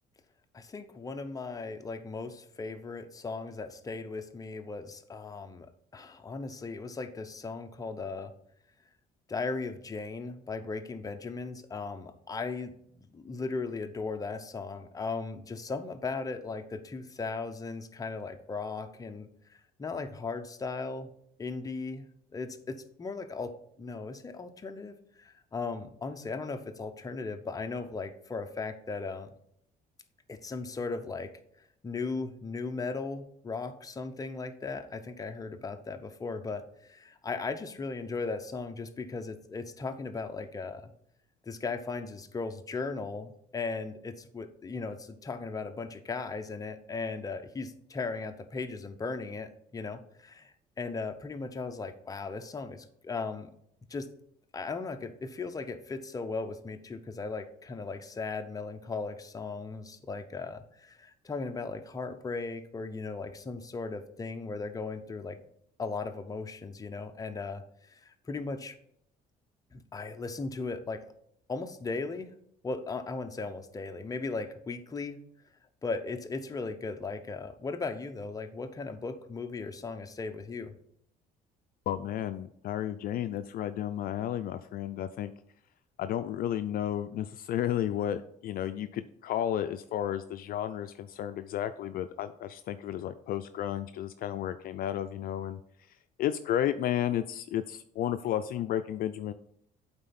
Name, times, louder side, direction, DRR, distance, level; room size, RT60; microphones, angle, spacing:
voice 1, 0.5-8.3 9.3-12.7 13.1-21.1 21.4-22.1 22.3-23.5 23.8-29.3 30.3-31.3 31.8-40.9 41.5-53.5 53.9-54.1 54.5-65.4 65.8-68.8 69.7-71.1 71.5-72.3 72.6-75.2 75.8-80.7, left 4 dB, 20° left, 7 dB, 0.7 m, -37 dB
voice 2, 81.9-85.3 86.0-95.6 96.2-99.3, left 11 dB, 60° left, 11 dB, 0.4 m, -32 dB
8.8 x 3.9 x 4.2 m, 0.69 s
cardioid pair, 110°, 17 cm